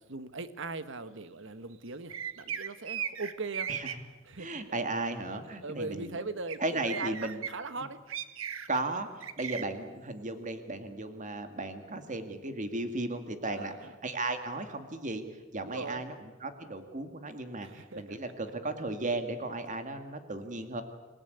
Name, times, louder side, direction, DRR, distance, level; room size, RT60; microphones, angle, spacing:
voice 1, 0.0-3.7 4.2-4.8 5.6-8.0 13.5-13.9 15.6-16.0 17.6-18.3, right 3 dB, 65° right, 12 dB, 1.4 m, -40 dB
sound 1, 2.1-3.9 6.5-6.6 6.8-7.5 8.1-8.8 9.2-9.6, right 8 dB, 85° right, 1.4 m, -36 dB
voice 2, 4.4-6.2 6.6-7.4 8.7-15.2 15.5-16.1 16.4-20.8, right 2 dB, 40° right, 8 dB, 2.1 m, -35 dB
26.5 x 17.5 x 9.4 m, 1.2 s
head